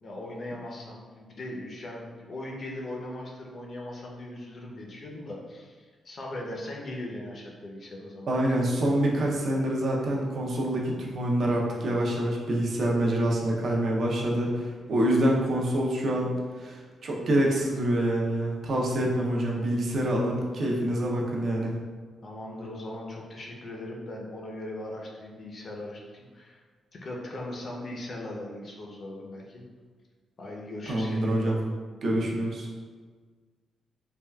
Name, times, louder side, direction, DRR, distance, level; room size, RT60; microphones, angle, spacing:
voice 1, 0.0-8.4 22.2-26.6 27.0-29.6 30.4-31.5, left 1 dB, 45° left, -1 dB, 0.5 m, -39 dB
voice 2, 8.3-16.3 16.6-21.7 30.9-31.6 32.0-32.7, right 1 dB, 60° right, -2 dB, 0.5 m, -26 dB
3.5 x 2.3 x 2.2 m, 1.5 s
cardioid pair, 110°, 0 cm